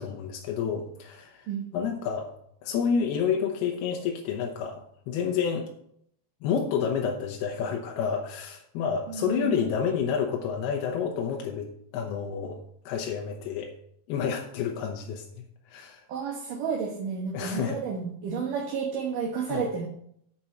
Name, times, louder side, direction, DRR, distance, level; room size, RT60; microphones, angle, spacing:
voice 1, 0.0-2.3 2.6-5.7 6.4-12.6 12.9-13.7 14.1-16.0 17.3-17.8 19.5-19.6, left 7 dB, 85° left, 1 dB, 3.0 m, -29 dB
voice 2, 1.5-2.0 9.1-9.6 16.1-19.9, right 6 dB, 65° right, 0 dB, 2.6 m, -31 dB
8.3 x 5.6 x 7.5 m, 0.70 s
omnidirectional pair, 4.4 m